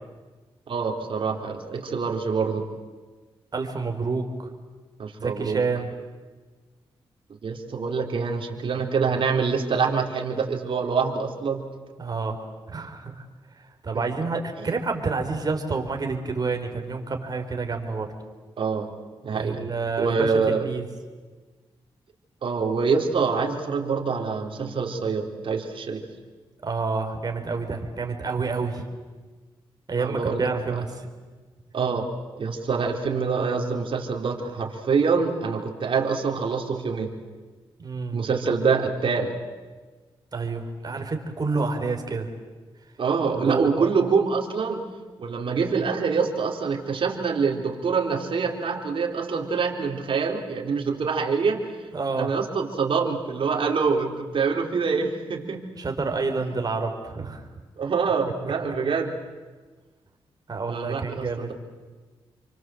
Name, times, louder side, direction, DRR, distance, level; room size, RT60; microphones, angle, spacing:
voice 1, 0.7-2.7 5.0-5.6 7.4-11.7 14.6-14.7 18.6-18.9 19.2-19.6 20.0-20.7 22.4-26.0 30.0-30.8 31.7-32.0 32.4-37.1 38.1-39.4 43.0-44.8 45.2-51.7 52.2-55.6 57.8-59.1 60.7-61.5, right 5 dB, 60° right, 2 dB, 3.8 m, -25 dB
voice 2, 3.5-4.3 5.2-5.9 12.0-12.3 12.7-13.1 13.8-18.1 19.3-20.8 26.6-28.8 29.9-31.0 37.8-38.2 40.3-42.3 43.3-43.9 51.9-52.3 55.8-57.4 60.5-61.5, right 4 dB, 40° right, 4 dB, 4.4 m, -28 dB
28.5 x 24.5 x 7.9 m, 1.4 s
cardioid pair, 75°, 10 cm